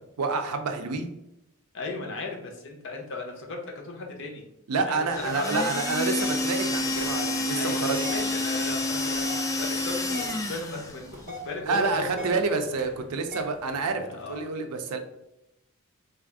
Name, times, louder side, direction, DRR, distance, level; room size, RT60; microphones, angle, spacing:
voice 1, 0.2-1.1 4.7-8.0 11.6-15.0, right 4 dB, 85° right, 6 dB, 0.5 m, -28 dB
voice 2, 1.7-4.5 4.9-5.7 7.5-12.4 14.2-14.4, left 3 dB, 55° left, 2 dB, 0.7 m, -36 dB
sound 1, 5.1-11.0, left 2 dB, 15° left, 0.3 m, -29 dB
sound 2, 6.2-14.4, equal, 40° right, 0.5 m, -43 dB
3.3 x 2.4 x 3.5 m, 0.89 s
head